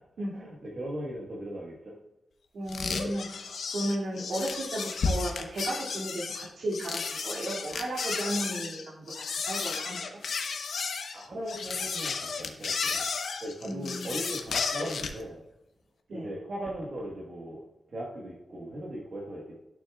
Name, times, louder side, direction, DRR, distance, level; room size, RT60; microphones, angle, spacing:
voice 1, 0.3-1.9 11.1-13.1 13.4-15.4 16.1-19.6, right 1 dB, 50° right, -3 dB, 1.3 m, -38 dB
voice 2, 2.5-9.1 9.3-10.0 13.7-14.1 16.1-16.3, right 1 dB, 85° right, -6 dB, 2.3 m, -34 dB
sound 1, 2.7-15.2, left 5 dB, 75° left, 0.8 m, -33 dB
12.0 x 6.9 x 2.3 m, 0.96 s
wide cardioid pair, 140°, 0 cm